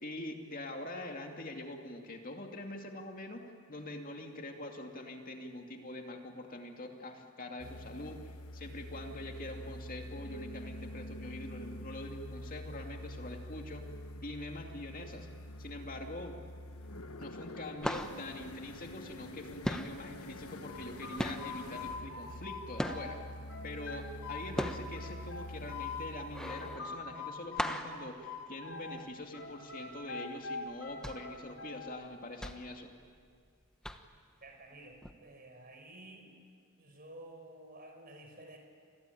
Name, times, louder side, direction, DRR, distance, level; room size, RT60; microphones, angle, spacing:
voice 1, 0.0-3.4 3.7-8.2 8.5-13.8 14.2-15.3 15.6-16.3 17.2-23.2 23.6-32.9, left 1 dB, 40° left, 3 dB, 2.5 m, -44 dB
sound 1, 7.6-26.8, left 1 dB, 80° left, 1.4 m, -46 dB
sound 2, 16.7-17.2 17.4-19.4 19.6-23.4 23.8-29.1 29.5-29.6 29.9-30.1 30.7-33.5 33.8-34.3 35.0-35.1, equal, 5° left, 1.1 m, -39 dB
sound 3, 20.6-23.2 23.5-26.0 26.4-29.0 29.3-32.0, left 5 dB, 60° left, 6.3 m, -43 dB
voice 2, 34.4-36.4 36.8-38.6, right 1 dB, 40° right, 4 dB, 5.2 m, -52 dB
28.5 x 22.5 x 9.3 m, 2.1 s
head